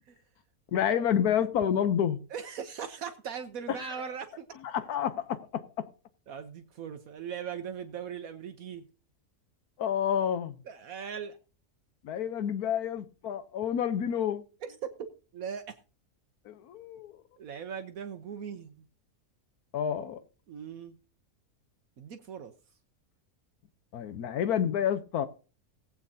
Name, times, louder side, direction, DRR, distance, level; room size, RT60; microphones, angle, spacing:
voice 1, 0.7-2.2 3.8-3.9 4.6-5.9 9.8-10.6 12.0-14.4 16.5-17.2 19.7-20.2 23.9-25.3, left 9 dB, 85° left, 1.3 m, -29 dB
voice 2, 2.3-4.5 6.3-8.8 10.7-11.4 14.6-15.8 17.4-18.8 20.5-21.0 22.0-22.5, right 7 dB, 70° right, 1.3 m, -39 dB
18.5 x 8.4 x 2.7 m
omnidirectional pair, 1.6 m